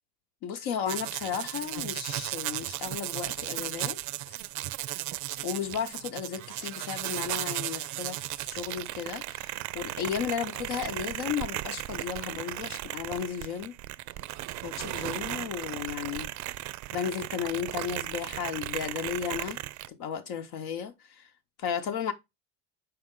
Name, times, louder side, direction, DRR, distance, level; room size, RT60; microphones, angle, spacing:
voice 1, 0.4-4.0 4.3-4.4 5.4-13.7 14.6-16.3 16.9-19.6 19.9-21.3 21.6-22.1, left 8 dB, 70° left, 0.9 m, -34 dB
sound 1, 0.9-19.9, right 16 dB, 55° right, 0.5 m, -36 dB
6.0 x 4.5 x 3.7 m
supercardioid pair, 115°, 36 cm